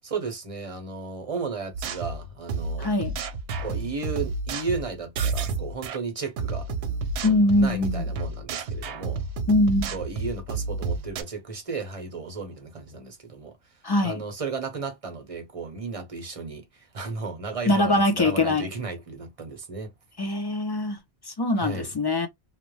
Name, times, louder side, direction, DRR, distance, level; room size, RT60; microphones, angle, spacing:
voice 1, 0.0-2.9 3.6-6.7 7.2-9.2 9.9-13.6 14.0-19.9 21.6-21.9, right 4 dB, 35° right, 0.7 m, -34 dB
sound 1, 1.7-6.0 6.4-11.2, right 4 dB, 90° right, 0.9 m, -31 dB
voice 2, 2.8-3.1 7.2-8.0 9.5-9.9 13.8-14.2 17.7-18.7 20.2-21.0 21.3-22.3, left 2 dB, 35° left, 0.4 m, -22 dB
2.5 x 2.1 x 3.0 m
omnidirectional pair, 1.1 m